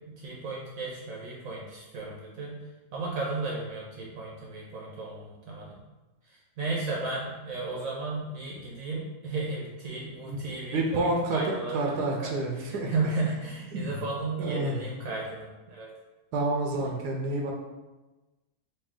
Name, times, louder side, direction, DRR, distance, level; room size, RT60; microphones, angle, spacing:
voice 1, 0.0-2.6 2.9-5.8 6.6-11.9 12.2-15.9, right 3 dB, 65° right, -3 dB, 1.0 m, -34 dB
voice 2, 10.7-12.9 13.7-14.0 14.4-14.8 16.3-17.5, right 2 dB, 80° right, 1 dB, 1.1 m, -29 dB
3.3 x 2.7 x 3.5 m, 1.1 s
omnidirectional pair, 1.7 m